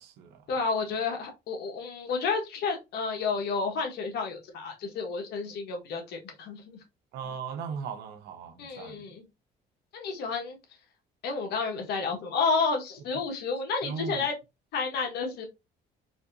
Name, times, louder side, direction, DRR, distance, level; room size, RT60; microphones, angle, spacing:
voice 1, 0.5-6.6 8.6-9.2 9.9-10.6 11.2-14.3 14.7-15.5, left 4 dB, 75° left, 1.4 m, -30 dB
voice 2, 7.1-9.0 13.8-14.2, right 6 dB, 80° right, 0.9 m, -37 dB
4.1 x 2.8 x 2.6 m
cardioid pair, 110°, 17 cm